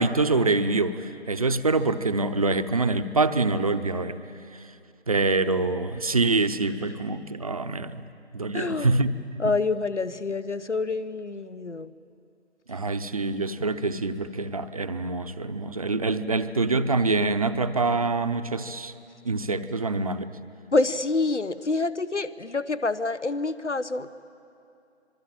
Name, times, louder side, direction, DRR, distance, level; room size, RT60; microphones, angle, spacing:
voice 1, 0.0-4.2 5.1-8.1 8.3-9.4 12.7-18.9 19.2-20.3, right 3 dB, 30° right, 10 dB, 0.8 m, -25 dB
voice 2, 8.5-9.0 9.4-11.9 20.7-24.1, left 3 dB, 85° left, 16 dB, 1.1 m, -27 dB
25.5 x 22.5 x 8.9 m, 2.6 s
figure-of-eight pair, 155°, 34 cm